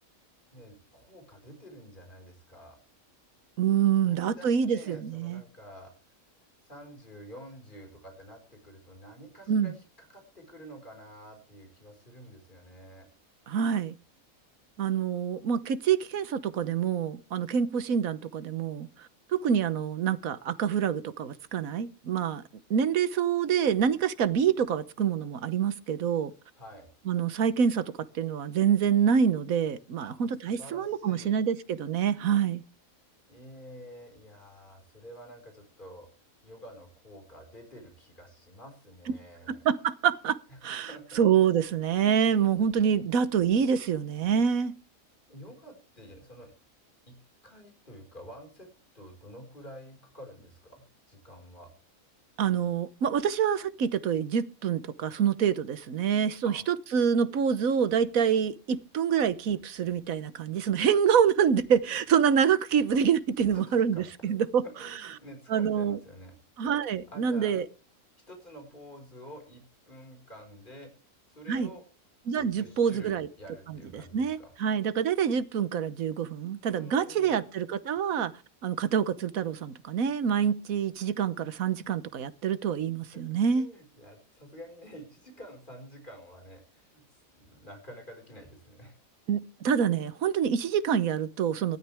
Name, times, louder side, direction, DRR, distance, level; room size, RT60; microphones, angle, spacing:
voice 1, 0.5-2.8 4.0-5.9 6.6-13.1 26.5-26.9 30.0-31.4 33.3-36.1 36.4-39.6 40.5-40.6 40.8-41.3 45.3-46.5 47.1-47.2 47.4-48.7 48.9-51.7 56.4-56.7 63.5-64.5 64.8-66.4 67.1-67.6 68.3-70.9 71.3-71.8 72.4-74.5 76.7-77.4 83.1-89.0, equal, 35° left, 5.2 m, -49 dB
voice 2, 3.6-5.4 9.5-9.7 13.5-13.9 14.8-22.4 22.7-26.3 27.1-32.6 39.5-40.4 40.6-40.9 41.1-44.7 52.4-64.6 65.5-66.0 66.6-67.6 71.5-71.7 72.3-73.3 74.1-78.3 78.6-83.7 89.3-91.8, right 7 dB, 75° right, 1.4 m, -26 dB
19.0 x 13.5 x 3.5 m
omnidirectional pair, 1.5 m